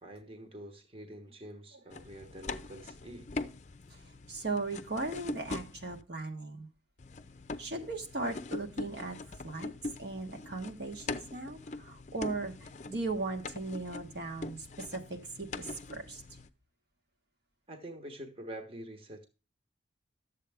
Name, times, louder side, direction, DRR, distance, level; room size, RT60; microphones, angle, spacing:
voice 1, 0.0-3.3 17.7-19.2, right 1 dB, 30° right, 1.1 m, -46 dB
sound 1, 1.9-6.0 7.0-16.5, left 3 dB, 40° left, 0.5 m, -42 dB
voice 2, 4.3-6.7 7.6-9.7 10.0-16.2, right 3 dB, 60° right, 1.3 m, -38 dB
11.5 x 7.5 x 3.5 m
head